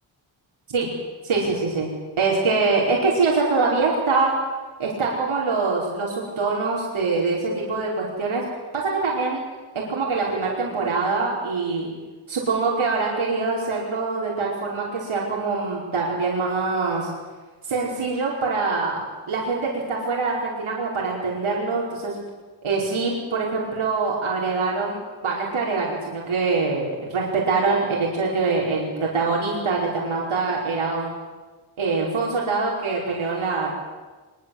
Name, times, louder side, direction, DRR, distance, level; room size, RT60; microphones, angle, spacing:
voice 1, 1.2-4.3 4.8-8.4 8.7-9.4 9.7-11.9 12.3-17.1 17.6-19.0 19.3-22.1 22.6-31.1 31.8-33.7, right 4 dB, 90° right, -4 dB, 5.1 m, -24 dB
24.0 x 22.5 x 8.0 m, 1.3 s
wide cardioid pair, 155°, 48 cm